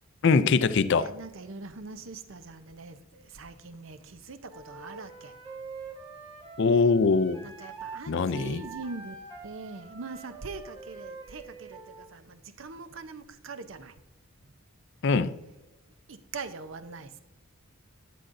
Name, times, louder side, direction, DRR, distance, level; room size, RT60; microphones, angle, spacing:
voice 1, 0.2-1.1 6.6-7.4 8.1-8.6 15.0-15.3, left 4 dB, 55° left, 0.4 m, -22 dB
voice 2, 1.0-5.4 7.4-9.2 9.4-13.9 16.1-17.2, right 4 dB, 60° right, 0.7 m, -42 dB
Wind instrument woodwind instrument, 4.5-8.0 8.3-12.1, right 4 dB, 25° right, 1.5 m, -45 dB
12.0 x 10.0 x 2.6 m
head